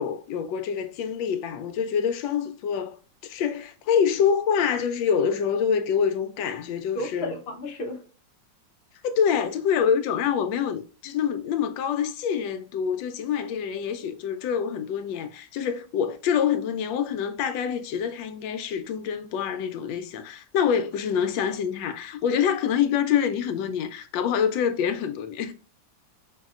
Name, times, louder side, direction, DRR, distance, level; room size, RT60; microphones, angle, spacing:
voice 1, 0.0-3.0 3.2-7.3 9.0-25.5, left 7 dB, 85° left, 1.3 m, -26 dB
voice 2, 6.9-8.0, left 1 dB, 45° left, 0.9 m, -32 dB
5.2 x 2.8 x 2.4 m
omnidirectional pair, 2.0 m